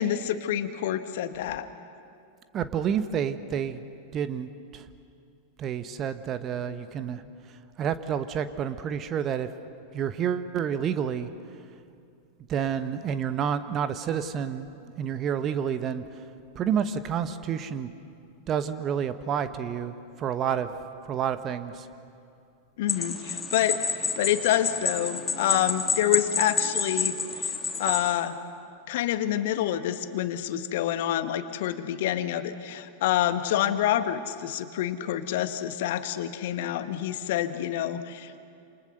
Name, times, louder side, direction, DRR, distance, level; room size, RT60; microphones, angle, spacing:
voice 1, 0.0-1.7 22.8-23.8 24.2-28.4 28.9-38.3, left 11 dB, 55° left, 11 dB, 1.4 m, -27 dB
voice 2, 2.5-3.8 4.1-4.8 5.6-7.2 7.8-9.5 9.9-11.3 12.5-14.7 15.0-16.0 16.5-17.9 18.5-20.7 21.1-21.9, right 8 dB, 30° right, 11 dB, 1.1 m, -29 dB
sound 1, 22.9-28.1, left 5 dB, 15° left, 2.9 m, -29 dB
28.5 x 28.5 x 6.7 m, 2.5 s
figure-of-eight pair, 90°, 0 cm